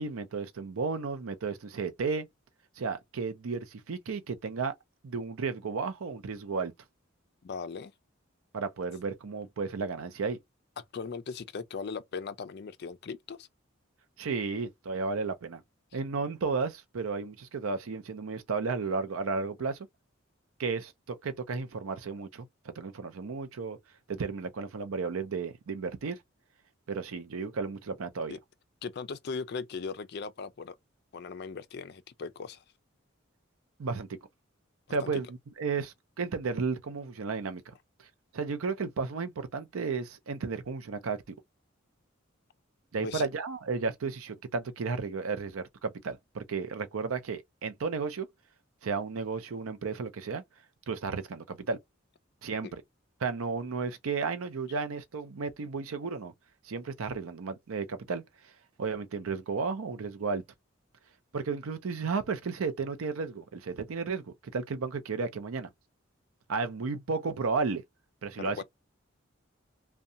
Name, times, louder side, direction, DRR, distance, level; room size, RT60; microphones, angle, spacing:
voice 1, 0.0-2.3 2.8-4.7 5.0-6.7 8.5-10.4 14.2-15.6 15.9-19.8 20.6-23.8 24.1-26.2 26.9-28.4 33.8-34.1 34.9-35.3 35.6-37.7 38.3-41.2 42.9-48.3 48.8-50.4 50.9-51.8 52.4-52.7 53.2-56.3 56.6-58.2 58.8-60.4 61.3-65.7 66.5-67.8 68.2-68.6, right 4 dB, 85° right, 0.5 m, -33 dB
voice 2, 7.4-7.9 10.9-13.5 28.3-28.4 28.8-30.8 31.1-32.6 35.0-35.2 43.0-43.3 68.4-68.6, left 5 dB, 50° left, 0.4 m, -38 dB
2.7 x 2.2 x 2.5 m
head